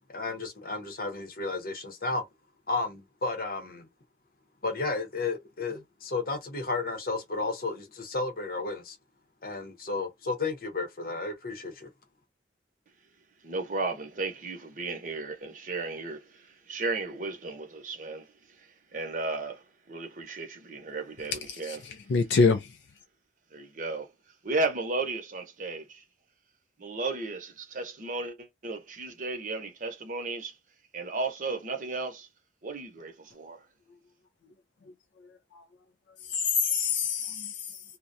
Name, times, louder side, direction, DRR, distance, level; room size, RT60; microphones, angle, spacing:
voice 1, 0.1-2.2 2.7-3.9 4.6-9.0 9.4-11.9, left 3 dB, 55° left, 0.7 m, -33 dB
voice 2, 13.4-21.9 23.5-24.1 24.4-26.0 26.8-30.6 30.9-32.3 32.6-33.6, right 3 dB, 45° right, 0.7 m, -34 dB
voice 3, 21.5-22.8 35.5-35.6 36.3-37.8, left 5 dB, 90° left, 0.4 m, -26 dB
2.2 x 2.1 x 2.6 m
head